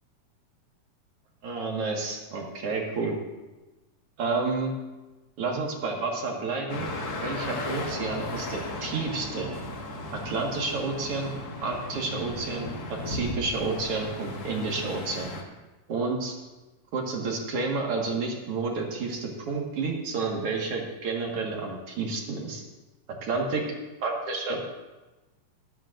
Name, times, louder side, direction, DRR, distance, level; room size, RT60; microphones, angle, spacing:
voice 1, 1.4-3.2 4.2-4.7 5.4-6.9 7.2-9.5 10.1-11.3 11.6-15.3 15.9-16.4 16.9-22.6 23.2-23.7 24.0-24.6, right 3 dB, 50° right, 0 dB, 2.3 m, -30 dB
sound 1, 6.7-15.4, left 2 dB, 60° left, 0.9 m, -36 dB
16.5 x 12.5 x 2.6 m, 1.1 s
omnidirectional pair, 3.9 m